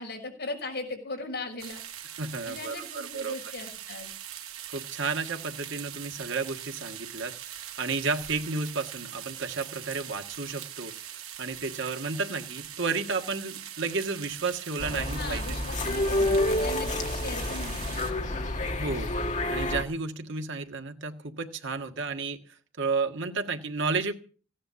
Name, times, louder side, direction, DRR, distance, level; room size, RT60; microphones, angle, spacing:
voice 1, 0.0-1.8 2.5-4.1 14.9-18.4, left 2 dB, 55° left, 1 dB, 6.2 m, -38 dB
sound 1, 1.6-18.1, right 10 dB, 80° right, 1.6 m, -42 dB
voice 2, 2.2-3.4 4.7-7.3 7.8-10.9 11.4-15.6 18.8-19.1 19.5-22.4 22.8-24.1, right 4 dB, 60° right, 6 dB, 1.6 m, -32 dB
sound 2, 14.8-19.8, left 1 dB, 35° left, 1.7 m, -29 dB
17.0 x 10.0 x 6.9 m, 0.41 s
head